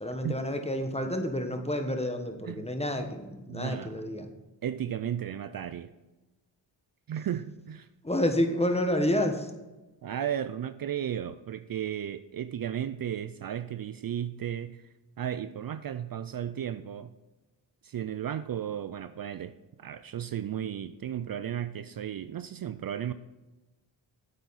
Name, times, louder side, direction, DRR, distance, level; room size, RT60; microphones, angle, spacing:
voice 1, 0.0-4.3 8.0-9.5, left 1 dB, 15° left, 5 dB, 1.2 m, -29 dB
voice 2, 3.5-4.1 4.6-5.9 7.1-7.9 10.0-14.9 15.2-17.1 17.8-19.5 19.8-23.1, right 10 dB, 50° right, 12 dB, 0.5 m, -34 dB
9.0 x 8.0 x 4.1 m, 1.1 s
cardioid pair, 75°, 45 cm